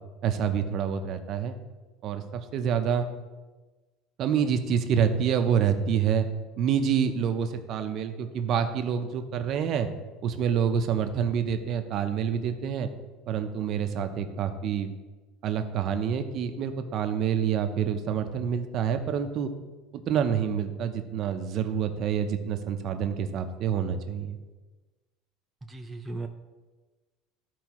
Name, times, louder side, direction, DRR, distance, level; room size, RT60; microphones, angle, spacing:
voice 1, 0.2-1.6 2.0-3.1 4.2-6.3 6.6-9.9 10.2-12.9 13.3-14.9 15.4-19.5 19.9-24.4, right 8 dB, 45° right, 7 dB, 0.7 m, -27 dB
voice 2, 25.7-26.3, right 2 dB, 10° right, 3 dB, 0.4 m, -36 dB
14.0 x 4.6 x 3.0 m, 1.2 s
cardioid pair, 145°, 0 cm